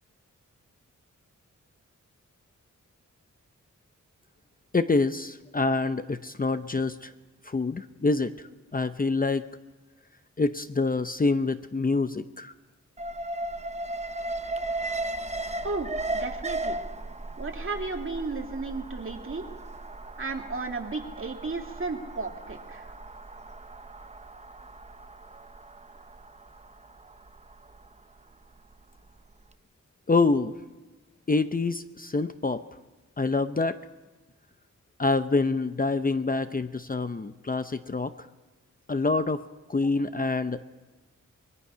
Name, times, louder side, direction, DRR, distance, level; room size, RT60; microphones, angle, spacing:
voice 1, 4.7-7.1 7.4-8.5 8.7-9.4 10.4-12.5 30.1-30.5 31.3-32.6 33.2-33.8 35.0-38.3 38.9-39.4 39.7-40.6, left 3 dB, 30° left, 10 dB, 0.7 m, -26 dB
Alarm, 13.0-29.1 29.4-29.5, right 2 dB, 20° right, 0.8 m, -36 dB
voice 2, 15.6-16.8 17.4-19.5 20.2-22.9, right 3 dB, 40° right, 3 dB, 2.4 m, -34 dB
23.5 x 21.5 x 5.7 m, 1.2 s
wide cardioid pair, 105°, 31 cm